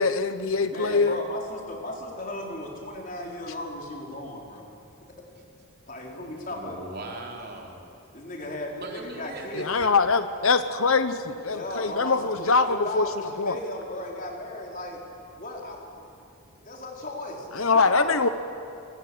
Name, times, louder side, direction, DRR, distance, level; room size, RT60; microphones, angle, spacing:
voice 1, 0.0-1.2 9.5-13.6 17.5-18.3, left 4 dB, 75° left, 11 dB, 1.1 m, -23 dB
voice 2, 0.7-4.7 5.9-6.8 8.1-9.7 11.5-15.0 15.4-15.9 16.6-18.3, left 1 dB, 40° left, 0 dB, 4.5 m, -36 dB
voice 3, 6.4-7.8 8.8-10.0, right 2 dB, 45° right, 0 dB, 4.2 m, -39 dB
26.5 x 26.0 x 8.0 m, 2.7 s
head